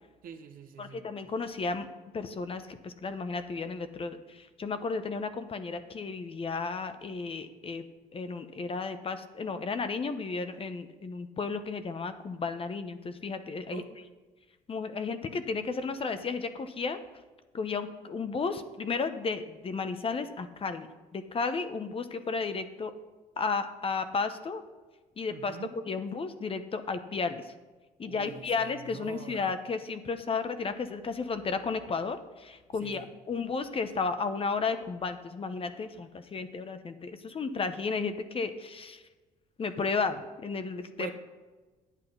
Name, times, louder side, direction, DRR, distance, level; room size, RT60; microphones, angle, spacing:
voice 1, 0.2-1.1 13.7-13.9 25.3-25.7 28.0-29.5 32.8-33.1 41.0-41.1, right 7 dB, 65° right, 7 dB, 1.3 m, -45 dB
voice 2, 0.8-1.9 2.1-7.8 8.1-13.8 14.7-17.0 17.5-22.9 23.4-24.6 25.2-25.6 25.9-27.4 28.0-39.0 39.6-41.1, left 4 dB, 35° left, 10 dB, 0.9 m, -33 dB
9.7 x 8.4 x 5.4 m, 1.3 s
supercardioid pair, 80°, 16 cm